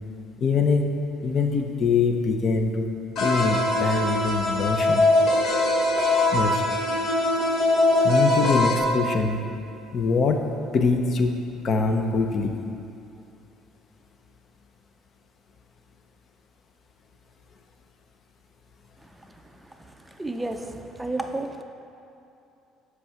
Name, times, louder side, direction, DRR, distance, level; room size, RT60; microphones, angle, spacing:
voice 1, 0.4-0.8 1.2-2.9 3.2-5.1 6.3-6.6 8.0-9.4 9.9-10.4 10.7-12.5, left 4 dB, 45° left, 5 dB, 0.7 m, -23 dB
sound 1, 3.2-8.8, left 2 dB, 65° left, 1.1 m, -22 dB
voice 2, 20.2-20.6 21.0-21.6, right 2 dB, 10° right, 5 dB, 0.5 m, -30 dB
6.0 x 4.7 x 6.4 m, 2.8 s
cardioid pair, 110°, 0 cm